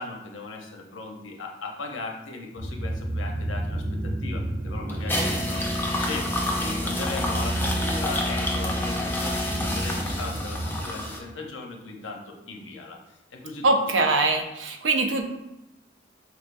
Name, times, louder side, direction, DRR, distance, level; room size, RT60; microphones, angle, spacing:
voice 1, 0.0-6.3 6.6-13.0 13.3-13.7, left 3 dB, 90° left, 1 dB, 0.7 m, -38 dB
sound 1, 2.6-10.8, right 1 dB, 60° right, 1.3 m, -32 dB
sound 2, 4.9-11.2, left 1 dB, 10° left, 0.4 m, -28 dB
voice 2, 13.6-15.2, right 2 dB, 85° right, 3 dB, 0.6 m, -22 dB
4.9 x 3.3 x 2.5 m, 0.94 s
head